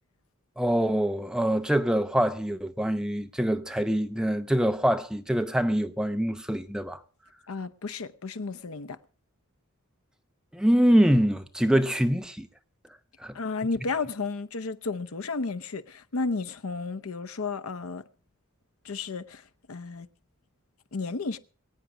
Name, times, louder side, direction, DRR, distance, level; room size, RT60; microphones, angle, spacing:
voice 1, 0.6-7.0 10.5-12.5 13.2-13.4, equal, 5° right, 0.7 m, -24 dB
voice 2, 7.5-9.0 13.3-18.0 18.8-20.1 20.9-21.4, left 4 dB, 80° left, 0.8 m, -33 dB
22.5 x 9.1 x 4.8 m
head